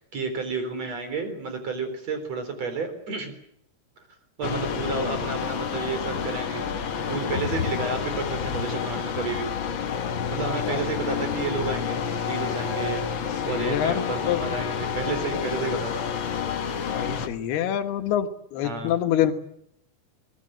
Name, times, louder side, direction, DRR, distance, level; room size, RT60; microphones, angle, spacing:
voice 1, 0.0-3.3 4.4-6.7 7.1-9.5 10.3-16.0 18.6-19.0, right 4 dB, 45° right, 8 dB, 5.1 m, -31 dB
sound 1, 4.4-17.3, left 7 dB, 75° left, 1.1 m, -29 dB
voice 2, 13.5-14.4 16.9-19.3, left 10 dB, 90° left, 7 dB, 3.5 m, -26 dB
26.0 x 20.0 x 7.7 m, 0.75 s
omnidirectional pair, 4.4 m